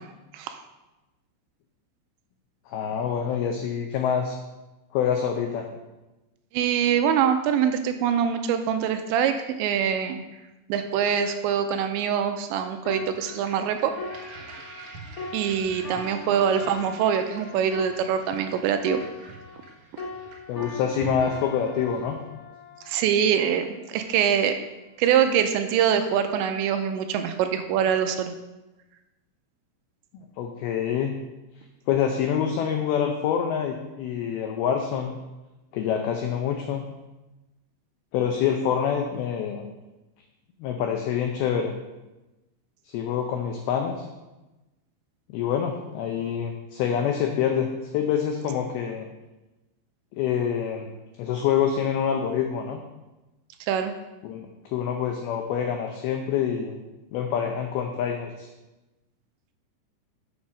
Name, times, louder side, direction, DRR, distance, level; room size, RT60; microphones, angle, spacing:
voice 1, 2.7-4.4 4.9-5.7 20.5-22.2 30.4-31.1 31.9-35.1 35.7-36.8 38.1-39.7 40.6-41.7 42.9-44.1 45.3-47.7 47.9-49.1 50.1-52.8 54.2-56.8 57.1-58.5, left 8 dB, 85° left, 4 dB, 2.2 m, -26 dB
voice 2, 6.5-10.2 10.7-13.9 15.3-19.0 22.9-24.6 25.0-28.3 53.7-53.9, right 8 dB, 85° right, 7 dB, 2.7 m, -24 dB
sound 1, 12.8-19.7 20.0-23.6 24.2-24.4, left 3 dB, 50° left, 1.0 m, -41 dB
sound 2, 12.9-22.2, right 3 dB, 65° right, 1.9 m, -45 dB
7.3 x 7.1 x 6.3 m, 1.1 s
omnidirectional pair, 5.4 m